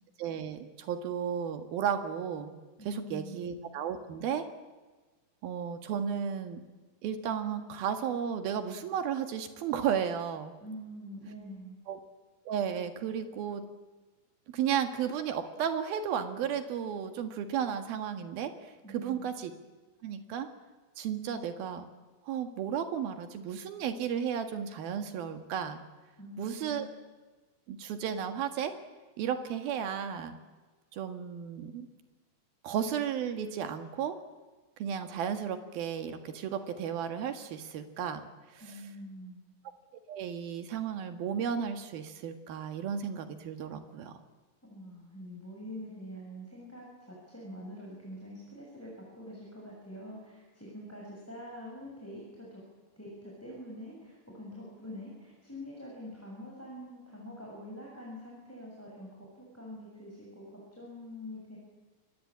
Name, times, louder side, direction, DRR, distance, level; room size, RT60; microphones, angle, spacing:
voice 1, 0.2-2.5 2.9-4.5 5.4-6.6 7.0-10.5 11.9-12.0 12.5-13.7 14.5-19.5 20.0-20.5 21.0-21.9 22.3-25.8 26.4-26.9 27.7-28.8 29.2-30.4 30.9-31.9 32.6-34.2 34.8-38.2 38.5-38.6 40.1-44.2, right 8 dB, 85° right, 7 dB, 3.7 m, -34 dB
voice 2, 2.8-3.5 10.6-11.8 18.8-19.3 26.2-26.9 38.6-39.4 44.7-52.6 53.0-59.1 59.3-61.6, equal, 5° left, -3 dB, 6.8 m, -45 dB
28.0 x 22.0 x 8.7 m, 1.3 s
omnidirectional pair, 4.1 m